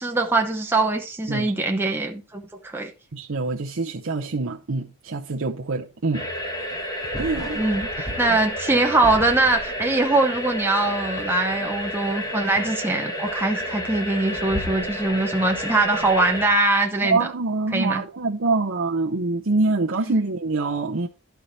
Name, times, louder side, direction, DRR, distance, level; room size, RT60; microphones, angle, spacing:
voice 1, 0.0-2.9 7.5-17.2 17.7-18.0 20.1-20.2, right 2 dB, 10° right, 0.7 m, -22 dB
voice 2, 3.1-6.3 7.2-7.6 8.3-8.4 17.0-21.1, right 3 dB, 60° right, 0.7 m, -25 dB
sound 1, 6.1-16.5, equal, 15° left, 1.3 m, -30 dB
11.5 x 4.7 x 4.1 m
head